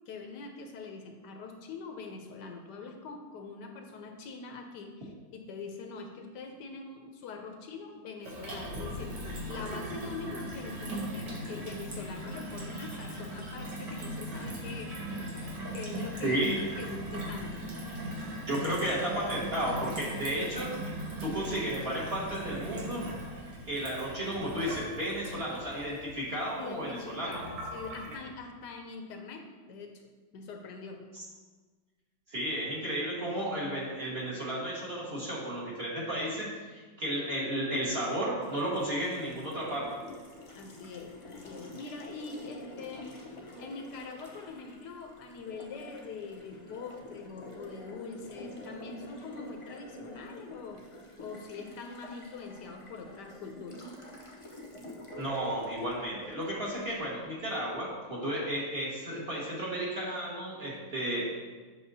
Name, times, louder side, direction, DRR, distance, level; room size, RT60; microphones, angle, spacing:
voice 1, 0.1-17.8 26.6-31.1 40.5-50.9 51.2-53.8, left 4 dB, 75° left, 4 dB, 1.2 m, -44 dB
Gurgling / Water tap faucet / Sink (filling or washing), 8.2-28.2, right 1 dB, 75° right, 1.8 m, -39 dB
voice 2, 16.2-16.5 18.5-20.8 21.2-23.1 23.7-27.4 31.1-31.2 32.3-36.7 37.0-39.9 55.2-61.3, right 1 dB, 35° right, -6 dB, 1.7 m, -33 dB
Water tap faucet, 38.4-57.6, equal, 55° left, 0.3 m, -48 dB
7.7 x 6.1 x 2.7 m, 1.4 s
omnidirectional pair, 1.9 m